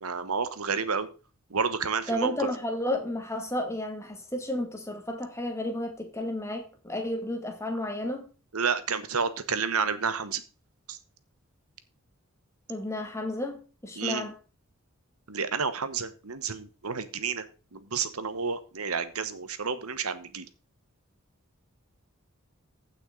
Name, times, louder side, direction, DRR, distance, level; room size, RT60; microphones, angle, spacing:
voice 1, 0.0-1.1 1.5-2.5 8.5-10.4 10.9-11.0 14.0-14.2 15.3-17.4 17.7-20.4, right 5 dB, 85° right, 1.1 m, -30 dB
voice 2, 2.1-8.3 12.7-14.4, left 1 dB, 15° left, 2.0 m, -32 dB
15.0 x 6.1 x 3.8 m
head